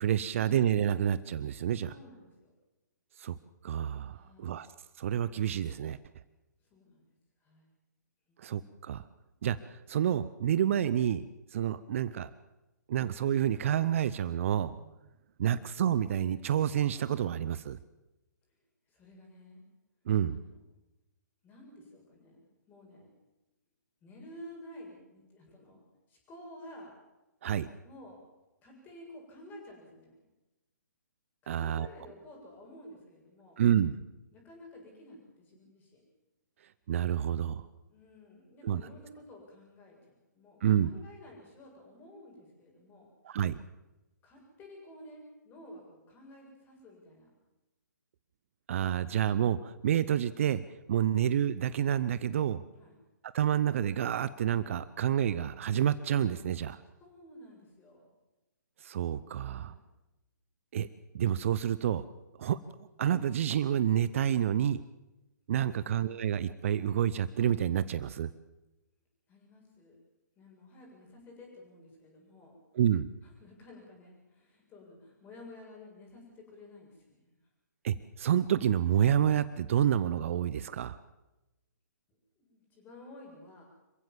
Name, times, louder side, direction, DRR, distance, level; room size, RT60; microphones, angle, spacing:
voice 1, 0.0-1.9 3.2-3.3 3.6-4.7 5.0-6.0 8.4-9.0 9.4-11.2 11.5-12.3 12.9-14.9 15.4-17.8 20.1-20.4 27.4-27.7 31.5-31.9 33.6-33.9 36.9-37.7 38.6-38.8 40.6-40.9 43.2-43.6 48.7-50.6 50.9-52.6 53.3-56.8 58.8-59.7 60.7-60.9 61.1-62.0 62.4-62.6 63.0-64.8 65.5-68.3 72.7-73.1 77.8-81.0, right 10 dB, 45° right, 16 dB, 0.7 m, -28 dB
voice 2, 1.9-2.5 4.1-4.6 6.6-7.1 7.4-7.7 8.3-8.6 15.4-15.7 18.9-19.6 20.3-20.6 21.4-22.4 22.7-23.1 24.0-25.8 26.1-26.9 27.8-28.2 28.6-30.2 31.4-33.6 34.3-36.0 37.9-43.1 44.2-47.3 52.8-52.9 56.9-58.1 59.3-59.8 65.6-65.9 69.3-70.0 70.4-72.5 73.2-77.3 82.4-83.6, left 1 dB, 20° left, 0 dB, 7.6 m, -52 dB
27.0 x 15.5 x 7.4 m, 1.0 s
figure-of-eight pair, 130°, 10 cm